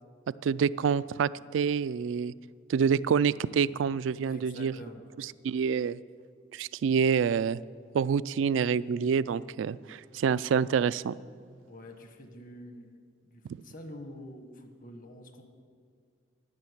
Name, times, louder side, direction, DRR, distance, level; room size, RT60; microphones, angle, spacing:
voice 1, 0.4-2.3 2.7-4.7 5.4-6.0 6.5-7.6 7.9-11.1, right 6 dB, 75° right, 19 dB, 0.3 m, -27 dB
voice 2, 4.2-5.0 11.7-15.4, left 1 dB, 45° left, 6 dB, 1.3 m, -47 dB
13.0 x 6.4 x 9.7 m, 2.2 s
head